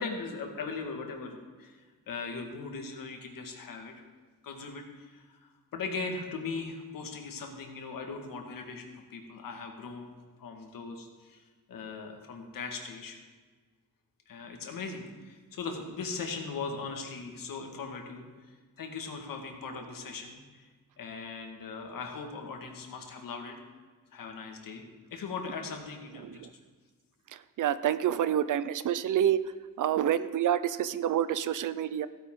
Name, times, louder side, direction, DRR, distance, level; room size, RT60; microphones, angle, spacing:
voice 1, 0.0-1.8 2.1-4.0 4.4-10.1 10.4-13.2 14.3-20.7 21.0-23.6 24.1-24.8 25.1-26.5, left 4 dB, 75° left, 3 dB, 1.8 m, -39 dB
voice 2, 27.6-29.4 29.8-32.1, right 10 dB, 65° right, 14 dB, 0.6 m, -27 dB
15.5 x 9.4 x 3.7 m, 1.4 s
wide cardioid pair, 145°, 34 cm